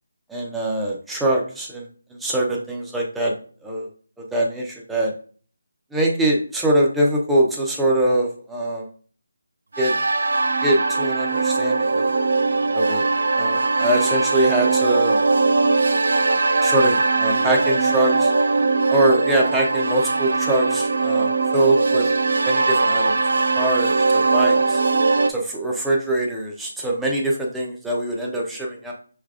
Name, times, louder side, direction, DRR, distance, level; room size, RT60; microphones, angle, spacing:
voice 1, 0.3-1.9 2.2-3.3 3.6-3.9 4.3-5.1 5.9-8.9 9.8-9.9 10.6-12.1 12.7-13.1 13.4-15.2 16.6-18.3 18.9-22.1 22.5-23.2 23.6-24.8 25.3-28.9, right 1 dB, ahead, -3 dB, 0.5 m, -23 dB
sound 1, 9.7-25.3, right 3 dB, 60° right, 0.4 m, -20 dB
5.5 x 3.3 x 2.4 m, 0.43 s
hypercardioid pair, 175°, 0 cm